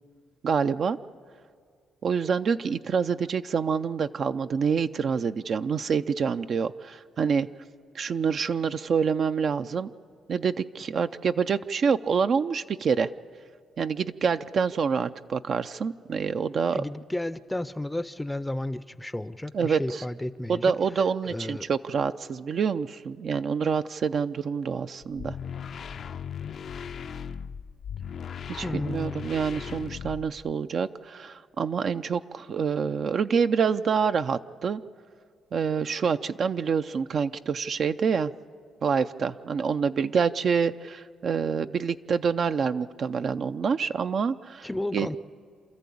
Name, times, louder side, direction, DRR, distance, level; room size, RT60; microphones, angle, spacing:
voice 1, 0.4-1.0 2.0-7.5 7.9-9.9 10.3-13.1 13.8-16.8 19.5-20.0 20.5-25.4 28.5-34.8 35.5-38.3 38.8-45.1, right 6 dB, 55° right, 9 dB, 0.5 m, -27 dB
voice 2, 16.7-20.7 21.3-21.7 28.6-29.3 44.6-45.2, left 1 dB, 10° left, 15 dB, 0.5 m, -32 dB
sound 1, 25.0-30.5, left 7 dB, 60° left, 0.5 m, -37 dB
28.0 x 13.5 x 8.5 m, 2.1 s
cardioid pair, 90°, 0 cm